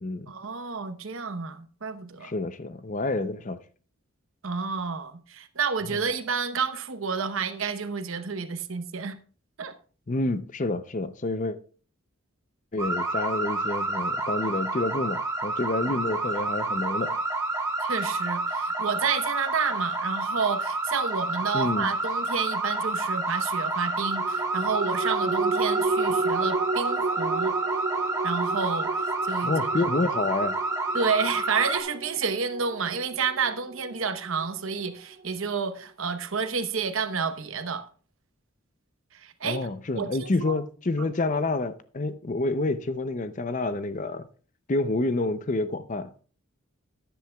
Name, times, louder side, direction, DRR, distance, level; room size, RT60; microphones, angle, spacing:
voice 1, 0.3-2.3 4.4-9.2 9.6-9.7 17.8-27.6 28.2-29.5 30.9-37.8 39.1-39.7 39.9-40.6 41.0-41.1, right 5 dB, 70° right, 0.9 m, -30 dB
voice 2, 2.2-3.6 5.9-6.0 10.1-11.6 12.7-17.2 21.5-21.9 29.4-30.6 39.4-44.3 44.7-46.2, left 2 dB, 35° left, 0.5 m, -28 dB
sound 1, 12.8-31.8, right 2 dB, 15° right, 1.4 m, -29 dB
sound 2, 24.0-34.9 35.2-35.3, right 3 dB, 45° right, 0.6 m, -32 dB
13.5 x 10.0 x 2.3 m
head